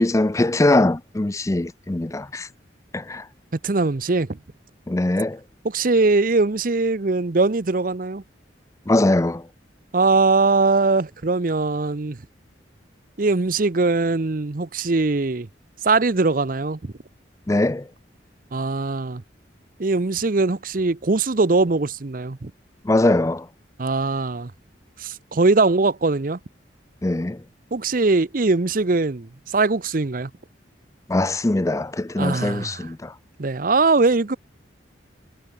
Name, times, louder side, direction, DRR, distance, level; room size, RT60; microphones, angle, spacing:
voice 1, 0.0-2.5 2.9-3.3 4.9-5.4 8.9-9.4 17.5-17.9 22.8-23.5 27.0-27.4 31.1-33.1, left 2 dB, 15° left, 0.4 m, -21 dB
voice 2, 3.6-4.4 5.6-8.2 9.9-12.2 13.2-15.5 15.8-16.9 18.5-19.2 19.8-22.5 23.8-24.5 25.0-26.4 27.7-30.3 32.2-32.9 33.4-34.4, right 3 dB, 50° right, 0.7 m, -21 dB
head